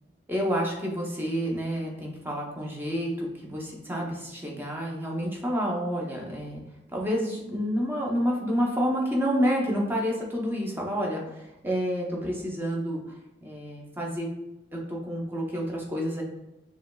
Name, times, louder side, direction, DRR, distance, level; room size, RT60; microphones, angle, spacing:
voice 1, 0.3-6.6 6.9-13.0 13.4-14.3 14.7-16.2, equal, 10° right, -2 dB, 0.7 m, -29 dB
4.9 x 3.0 x 2.3 m, 0.97 s
head